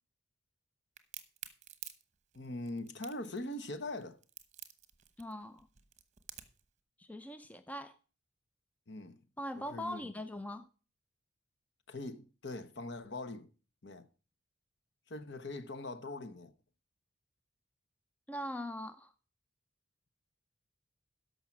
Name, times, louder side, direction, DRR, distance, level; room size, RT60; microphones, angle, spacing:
Crack, 1.0-6.6, right 11 dB, 35° right, 1.0 m, -49 dB
voice 1, 2.3-4.2 8.9-9.2 9.7-10.0 11.9-13.5 13.8-14.1 15.1-16.5, left 2 dB, 55° left, 1.0 m, -42 dB
voice 2, 5.2-5.7 7.0-8.0 9.4-10.7 18.3-19.1, left 1 dB, 5° left, 0.4 m, -41 dB
13.0 x 5.6 x 5.9 m
head